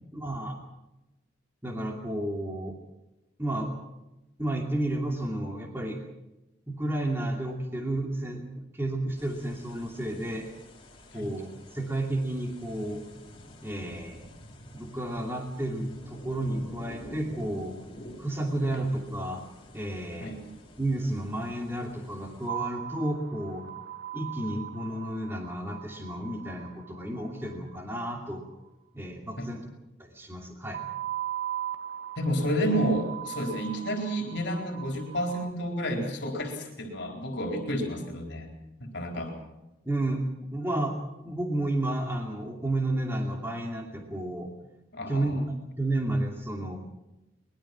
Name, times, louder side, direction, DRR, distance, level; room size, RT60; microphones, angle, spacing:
voice 1, 0.1-0.5 1.6-2.7 3.4-3.7 4.4-6.0 6.7-10.5 11.1-13.0 13.6-14.3 14.7-17.7 18.2-19.4 19.7-20.4 20.8-23.6 24.1-28.4 28.9-29.6 30.0-30.8 39.9-40.2 40.5-41.0 41.2-44.5 45.1-45.5 45.8-46.8, right 1 dB, 10° right, 1 dB, 2.6 m, -31 dB
sound 1, 9.2-22.5, equal, 25° left, 3.8 m, -48 dB
sound 2, 22.5-27.8 30.7-35.5, right 11 dB, 70° right, 1.8 m, -38 dB
voice 2, 32.2-38.5 38.8-39.3 44.9-45.4, equal, 65° left, 2 dB, 4.3 m, -30 dB
23.5 x 21.5 x 6.2 m, 0.97 s
head